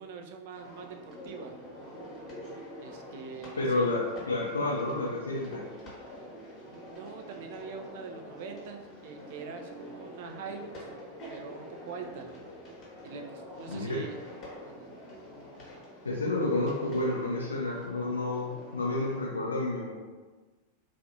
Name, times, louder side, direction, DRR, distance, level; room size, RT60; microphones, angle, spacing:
voice 1, 0.0-1.6 2.8-3.9 6.6-10.9 11.3-12.3 13.0-14.2 14.7-14.9, right 5 dB, 50° right, 4 dB, 0.3 m, -43 dB
sound 1, 0.5-19.2, equal, 35° left, 1.1 m, -46 dB
voice 2, 3.6-5.6 13.7-14.0 16.0-19.9, left 2 dB, 75° left, -3 dB, 0.4 m, -30 dB
3.3 x 2.4 x 2.6 m, 1.3 s
figure-of-eight pair, 90°, 0 cm